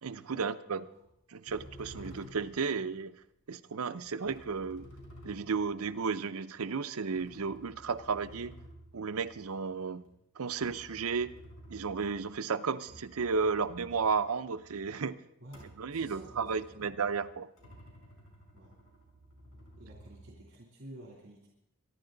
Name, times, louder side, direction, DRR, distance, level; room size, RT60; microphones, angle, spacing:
voice 1, 0.0-0.8 1.3-3.1 3.5-4.9 5.2-8.5 8.9-10.0 10.4-11.3 11.7-15.2 15.8-17.5, right 5 dB, 80° right, 11 dB, 0.6 m, -33 dB
sound 1, 1.0-1.1 1.5-3.1 4.0-6.5 7.1-12.4 12.7-14.9 15.5-20.5, equal, 65° left, 4.5 m, -53 dB
voice 2, 15.9-16.9 18.5-18.7 19.8-21.5, right 1 dB, 50° right, -3 dB, 3.0 m, -51 dB
24.0 x 11.0 x 3.9 m, 0.80 s
head